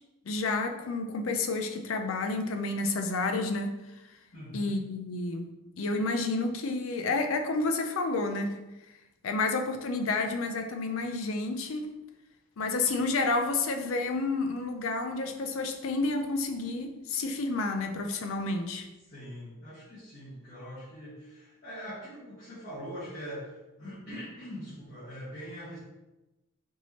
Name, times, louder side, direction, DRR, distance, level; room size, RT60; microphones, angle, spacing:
voice 1, 0.3-3.7 4.5-5.5 5.8-8.6 9.2-11.9 12.6-18.9, left 3 dB, 75° left, 5 dB, 0.5 m, -30 dB
voice 2, 4.3-4.7 19.1-23.5 23.8-25.8, equal, 45° left, -11 dB, 1.4 m, -42 dB
4.5 x 2.8 x 3.1 m, 1.0 s
head